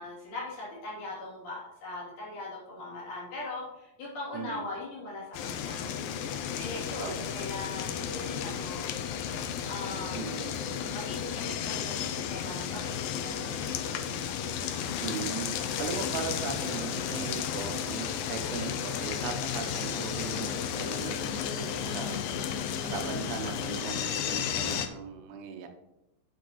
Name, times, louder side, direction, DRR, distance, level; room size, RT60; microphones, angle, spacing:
voice 1, 0.0-5.9 6.6-8.9 9.6-10.4 10.9-14.1, left 2 dB, 55° left, -6 dB, 4.1 m, -40 dB
voice 2, 4.3-4.7 7.0-7.4 10.1-10.5 15.0-22.3 22.8-25.7, right 6 dB, 80° right, 6 dB, 2.8 m, -38 dB
sound 1, 5.3-24.9, left 8 dB, 80° left, 2.0 m, -33 dB
10.5 x 7.0 x 3.0 m, 0.94 s
omnidirectional pair, 4.7 m